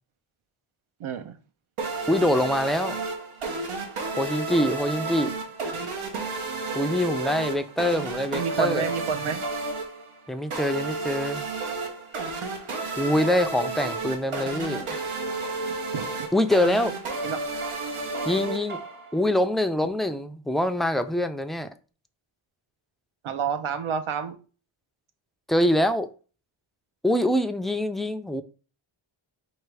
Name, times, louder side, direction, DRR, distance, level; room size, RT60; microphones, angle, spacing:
voice 1, 1.0-1.3 8.3-9.4 15.9-16.1 17.2-17.4 23.2-24.3, right 7 dB, 75° right, 0.8 m, -28 dB
sound 1, 1.8-19.2, right 3 dB, 90° right, 1.1 m, -32 dB
voice 2, 2.1-3.0 4.2-5.4 6.7-8.9 10.3-11.4 13.0-15.0 16.3-16.9 18.3-18.8 19.1-21.7 25.5-26.1 27.0-28.4, left 1 dB, ahead, 0.3 m, -24 dB
4.6 x 2.5 x 4.7 m
wide cardioid pair, 90°, 50 cm